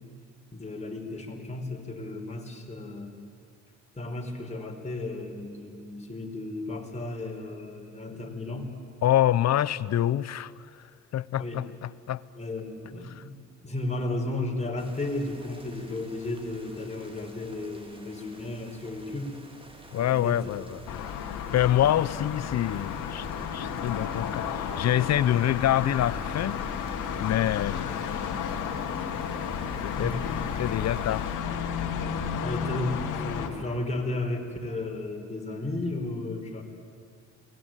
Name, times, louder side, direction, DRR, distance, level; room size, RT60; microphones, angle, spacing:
voice 1, 0.5-3.2 4.0-8.8 11.4-11.6 12.3-13.3 13.6-19.4 19.9-20.7 30.0-30.2 32.4-36.6, left 2 dB, 20° left, 2 dB, 4.7 m, -34 dB
voice 2, 9.0-10.5 11.1-12.2 13.1-13.2 19.9-21.1 21.5-23.3 23.5-26.6 27.2-27.9 29.8-30.2 30.6-31.2, left 12 dB, 60° left, 18 dB, 0.8 m, -26 dB
sound 1, 14.8-31.4, right 1 dB, 20° right, 3.6 m, -50 dB
sound 2, 20.9-33.5, left 7 dB, 85° left, 2.5 m, -32 dB
29.0 x 20.5 x 9.1 m, 2.4 s
cardioid pair, 90°, 30 cm